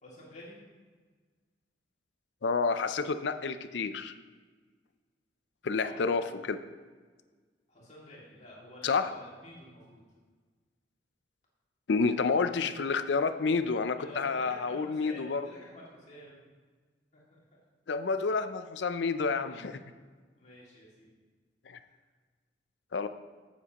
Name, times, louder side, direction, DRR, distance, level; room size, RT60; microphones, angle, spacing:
voice 1, 0.0-0.6 5.7-6.1 7.7-10.0 14.0-16.4 17.1-17.2 19.5-19.6 20.4-21.1, left 1 dB, 40° left, -6 dB, 2.4 m, -50 dB
voice 2, 2.4-4.1 5.6-6.6 8.8-9.1 11.9-15.5 17.9-19.8 21.7-21.8 22.9-23.1, left 4 dB, 70° left, 10 dB, 0.5 m, -29 dB
14.5 x 7.4 x 3.0 m, 1.5 s
head